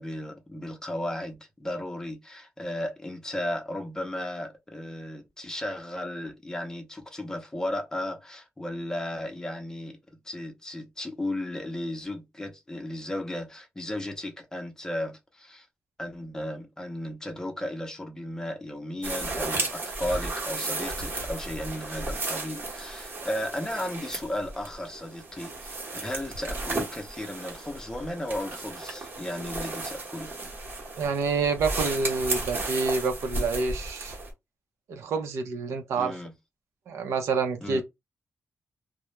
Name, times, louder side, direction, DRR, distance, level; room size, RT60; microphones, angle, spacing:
voice 1, 0.0-15.7 16.0-30.3 36.0-36.3 37.6-37.8, left 1 dB, 15° left, 0.6 m, -35 dB
sound 1, 19.0-34.3, right 2 dB, 45° right, 0.9 m, -34 dB
voice 2, 31.0-34.2 34.9-36.1 36.9-37.8, right 4 dB, 90° right, 0.5 m, -28 dB
2.2 x 2.0 x 2.9 m
wide cardioid pair, 125°, 5 cm